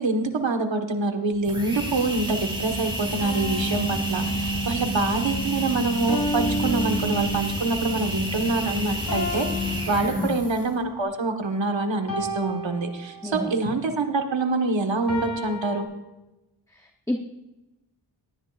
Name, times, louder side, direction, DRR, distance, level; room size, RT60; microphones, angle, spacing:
voice 1, 0.0-15.9, right 3 dB, 70° right, 5 dB, 1.5 m, -26 dB
sound 1, 1.3-10.8, right 1 dB, 10° right, 3.1 m, -29 dB
sound 2, 3.2-5.0 6.1-7.7 9.1-10.7 12.1-13.6 15.1-15.8, left 1 dB, 45° left, 4.2 m, -33 dB
voice 2, 10.0-10.4 13.2-13.5 16.7-17.2, left 1 dB, 5° left, 3 dB, 0.8 m, -29 dB
18.0 x 11.0 x 2.5 m, 0.99 s
wide cardioid pair, 65°, 47 cm